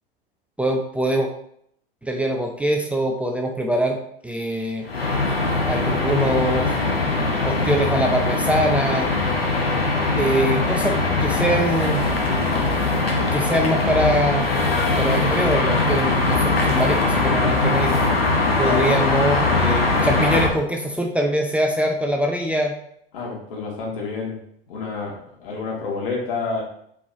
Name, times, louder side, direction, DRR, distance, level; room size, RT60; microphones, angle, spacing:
voice 1, 0.6-1.3 2.0-4.0 4.2-4.8 5.7-6.8 7.4-9.1 10.2-12.0 13.3-14.5 15.0-17.9 18.6-22.7, right 1 dB, 5° right, 2 dB, 0.9 m, -23 dB
sound 1, 4.8-20.5, left 3 dB, 85° left, 1.2 m, -21 dB
voice 2, 18.4-19.2 23.1-24.4 24.7-26.6, left 4 dB, 65° left, -2 dB, 2.7 m, -29 dB
8.4 x 4.8 x 2.9 m, 0.68 s
figure-of-eight pair, 80°, 29 cm